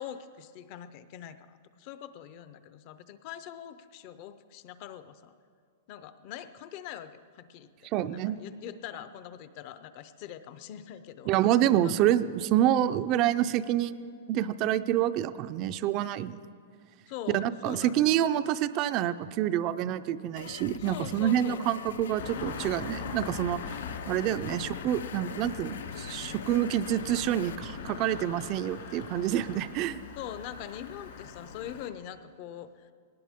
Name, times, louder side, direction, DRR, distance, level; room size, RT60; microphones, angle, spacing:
voice 1, 0.0-5.3 5.9-7.7 8.1-11.3 11.8-11.9 17.1-18.2 20.8-21.7 24.3-24.7 30.2-32.9, left 10 dB, 35° left, 12 dB, 0.6 m, -43 dB
voice 2, 7.9-8.4 11.3-16.4 17.3-23.8 24.1-30.0, right 11 dB, 30° right, 13 dB, 0.4 m, -27 dB
sound 1, 20.4-27.6, left 8 dB, 90° left, 0.4 m, -44 dB
Engine starting, 22.2-31.9, left 6 dB, 60° left, 2.5 m, -41 dB
20.5 x 18.5 x 3.6 m, 2.2 s
supercardioid pair, 170°, 0 cm